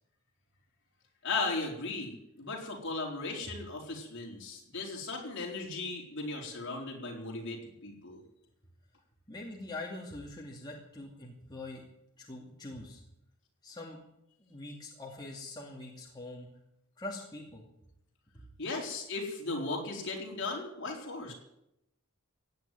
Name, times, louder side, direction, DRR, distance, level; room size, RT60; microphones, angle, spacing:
voice 1, 1.2-8.2 18.6-21.3, left 3 dB, 55° left, -1 dB, 4.2 m, -37 dB
voice 2, 9.3-11.8 12.2-13.0 13.6-14.0 14.4-16.5 17.0-17.7 18.3-18.5, left 2 dB, 20° left, -2 dB, 2.4 m, -43 dB
16.0 x 9.4 x 9.4 m, 0.82 s
head